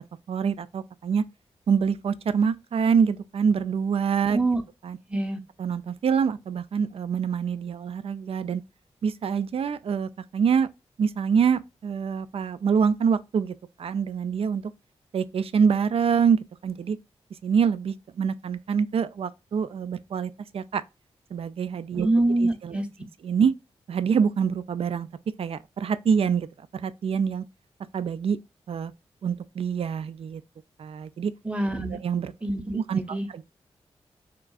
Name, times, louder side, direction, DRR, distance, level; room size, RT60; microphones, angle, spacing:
voice 1, 0.3-1.2 1.7-4.4 4.8-5.0 5.6-8.6 9.0-10.7 11.0-14.6 15.1-17.0 17.4-20.8 21.3-22.1 22.4-22.8 23.2-23.5 23.9-25.1 25.4-26.5 26.7-27.4 27.9-28.4 28.7-28.9 29.2-30.4 30.8-31.3 32.0-32.3 32.7-33.4, right 6 dB, 60° right, 0.3 m, -25 dB
voice 2, 21.9-22.9 31.4-32.0 32.4-33.3, right 2 dB, 10° right, 0.8 m, -25 dB
3.7 x 2.4 x 2.3 m
cardioid pair, 45°, 11 cm